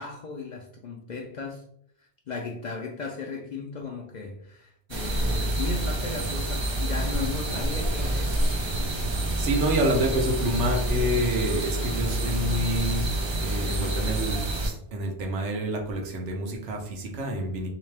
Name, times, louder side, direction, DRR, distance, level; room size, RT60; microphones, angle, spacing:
voice 1, 0.0-1.6 2.3-8.9, left 4 dB, 55° left, 0.5 m, -36 dB
sound 1, 4.9-14.7, right 1 dB, 40° right, 0.4 m, -27 dB
voice 2, 9.4-13.1 13.4-17.7, equal, 80° right, 1.1 m, -28 dB
3.6 x 2.8 x 3.2 m
omnidirectional pair, 1.2 m